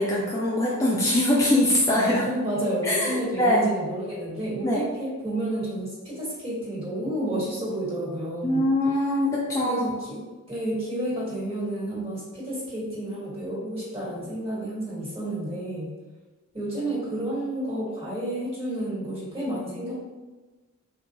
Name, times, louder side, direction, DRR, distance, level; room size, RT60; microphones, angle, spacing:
voice 1, 0.0-2.3 2.8-3.7 4.6-4.8 8.4-9.9, left 1 dB, 15° left, -5 dB, 0.3 m, -22 dB
voice 2, 2.2-8.7 9.6-16.0 16.5-20.0, right 1 dB, 25° right, -7 dB, 1.2 m, -30 dB
3.5 x 2.2 x 2.8 m, 1.2 s
head